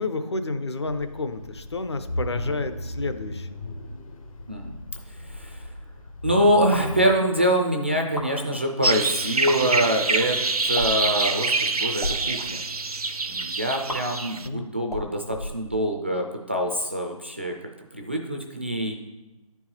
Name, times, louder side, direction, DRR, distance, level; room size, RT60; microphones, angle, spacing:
voice 1, 0.0-3.6 14.4-14.7, left 3 dB, 50° left, 9 dB, 0.7 m, -30 dB
sound 1, 0.9-7.2, left 1 dB, 65° left, 1.4 m, -35 dB
voice 2, 4.5-4.8 5.2-5.7 6.2-10.4 10.6-12.6 13.3-17.6 17.9-19.0, equal, 20° right, 2 dB, 0.4 m, -25 dB
sound 2, 6.7-7.0 8.0-8.3 9.3-9.6 10.7-11.1 11.9-12.2 13.9-14.0 14.8-16.0, left 1 dB, 90° left, 2.6 m, -33 dB
sound 3, 8.8-14.5, right 3 dB, 90° right, 0.7 m, -26 dB
10.5 x 4.6 x 4.3 m, 1.1 s
figure-of-eight pair, 165°, 19 cm